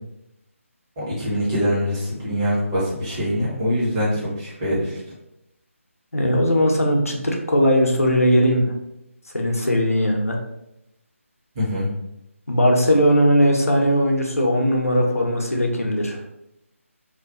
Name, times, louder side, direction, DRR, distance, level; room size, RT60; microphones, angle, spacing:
voice 1, 1.0-4.9 11.6-11.9, equal, 20° right, -8 dB, 0.9 m, -23 dB
voice 2, 6.1-8.7 9.3-10.4 12.5-16.2, equal, 85° left, 0 dB, 0.6 m, -19 dB
2.4 x 2.2 x 2.5 m, 0.84 s
figure-of-eight pair, 155°, 8 cm